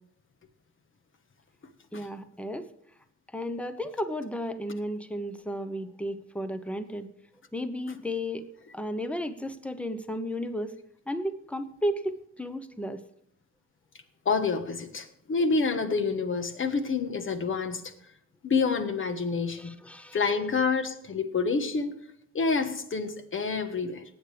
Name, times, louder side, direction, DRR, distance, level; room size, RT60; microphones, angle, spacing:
voice 1, 1.9-2.7 3.3-7.1 7.5-8.5 8.7-10.7 11.1-13.0 19.4-20.2, equal, 5° left, 0.9 m, -33 dB
voice 2, 14.2-17.9 18.4-19.8 20.1-21.9 22.3-24.0, left 4 dB, 40° left, 1.3 m, -28 dB
18.5 x 8.3 x 3.4 m
cardioid pair, 90°, 30 cm